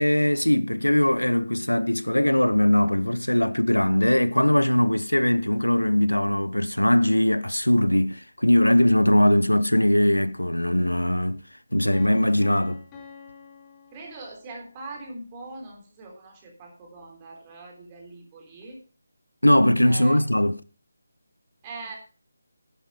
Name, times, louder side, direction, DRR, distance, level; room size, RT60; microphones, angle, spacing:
voice 1, 0.0-11.4 11.7-12.8 19.4-20.6, left 1 dB, 80° left, 0.7 m, -20 dB
Piano, 11.9-14.7, left 5 dB, 15° left, 3.1 m, -47 dB
voice 2, 13.9-18.8 19.8-20.2 21.6-22.0, right 3 dB, 20° right, 3.5 m, -41 dB
11.0 x 9.7 x 5.1 m
figure-of-eight pair, 155°, 0 cm